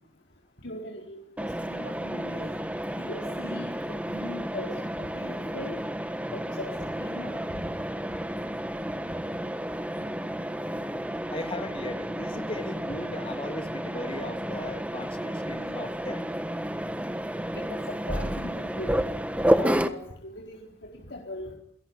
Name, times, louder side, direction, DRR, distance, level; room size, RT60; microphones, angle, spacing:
voice 1, 0.6-2.5 3.0-5.8 6.3-6.7 7.0-7.6 17.5-19.0 19.6-21.5, left 1 dB, 75° left, 0 dB, 4.3 m, -40 dB
Mechanisms, 1.4-19.9, equal, 10° right, 1.4 m, -31 dB
voice 2, 11.3-16.3, left 1 dB, 30° left, 7 dB, 2.6 m, -37 dB
29.0 x 17.5 x 9.8 m, 0.72 s
head